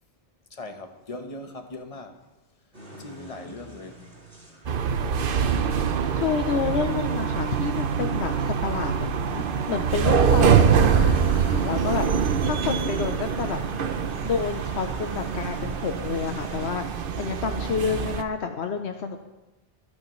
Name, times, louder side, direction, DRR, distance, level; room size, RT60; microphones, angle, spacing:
voice 1, 0.5-2.2 2.9-4.1 18.7-19.2, left 2 dB, 35° left, 1.1 m, -40 dB
sound 1, 2.7-16.7, equal, 80° right, 4.1 m, -45 dB
sound 2, 4.7-18.2, right 7 dB, 60° right, 0.8 m, -24 dB
voice 2, 6.1-12.1 12.4-13.6 14.2-16.9 17.2-19.2, left 6 dB, 75° left, 1.0 m, -29 dB
25.5 x 8.7 x 3.1 m
omnidirectional pair, 1.1 m